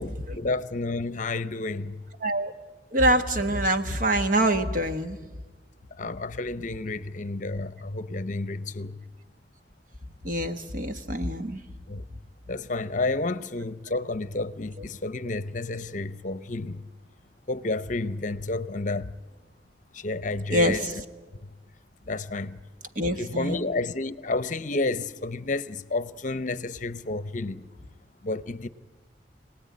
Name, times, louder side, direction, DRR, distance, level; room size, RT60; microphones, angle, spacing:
voice 1, 0.0-2.0 6.0-8.9 11.9-12.0 12.5-16.8 17.5-19.1 19.9-20.8 22.1-22.6 23.0-27.6 28.2-28.7, left 2 dB, 45° left, 0.8 m, -30 dB
voice 2, 2.2-2.5 2.9-5.2 10.2-11.6 20.5-21.0 22.9-23.7, right 1 dB, 50° right, 1.5 m, -25 dB
26.0 x 19.0 x 9.6 m
head